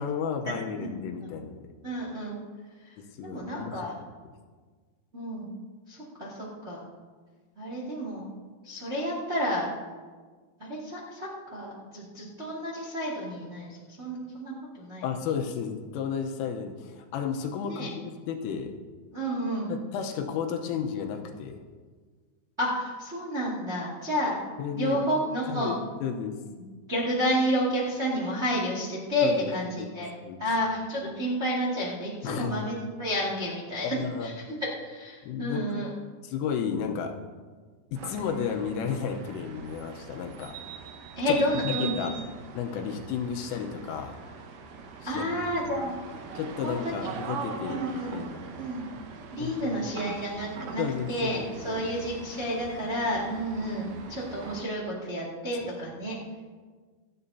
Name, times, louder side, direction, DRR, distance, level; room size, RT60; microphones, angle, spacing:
voice 1, 0.0-1.6 3.2-3.9 15.0-18.7 19.7-21.6 24.6-25.0 25.5-25.8 26.0-26.4 29.2-29.9 30.2-30.4 32.2-32.6 33.8-34.3 35.2-35.6 36.2-37.1 37.9-40.5 41.3-41.4 41.6-42.1 42.5-44.1 45.0-45.3 45.6-45.7 46.4-48.4 49.4-49.9 50.8-51.8, left 7 dB, 90° left, 4 dB, 3.5 m, -33 dB
voice 2, 1.8-2.4 3.2-4.0 5.1-5.5 5.9-6.8 7.6-8.3 8.6-9.7 10.6-15.0 17.6-17.9 19.1-19.7 22.6-24.3 24.7-25.8 26.5-30.1 30.4-35.9 41.1-41.9 45.0-46.0 46.6-46.9 47.6-48.1 48.6-48.9 49.3-56.1, equal, 55° right, -5 dB, 0.7 m, -30 dB
sound 1, 37.9-54.6, right 6 dB, 80° right, 1.9 m, -42 dB
27.0 x 9.0 x 2.8 m, 1.5 s
omnidirectional pair, 5.7 m